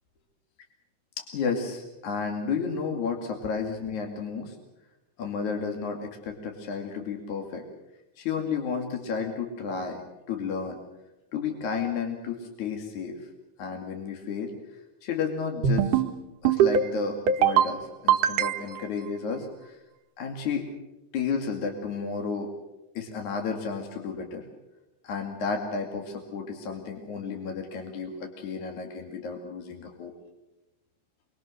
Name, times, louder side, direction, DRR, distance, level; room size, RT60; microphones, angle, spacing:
voice 1, 1.2-4.6 5.2-7.6 8.2-10.0 10.3-10.8 11.3-13.2 13.6-14.5 15.0-16.0 16.4-19.8 20.2-20.7 21.1-22.5 23.0-24.4 25.0-30.1, left 5 dB, 65° left, 2 dB, 3.7 m, -32 dB
sound 1, 15.6-16.1 16.4-16.9 17.3-17.7 18.1-18.9, right 8 dB, 85° right, 2.7 m, -22 dB
27.0 x 23.5 x 6.4 m, 0.99 s
omnidirectional pair, 3.7 m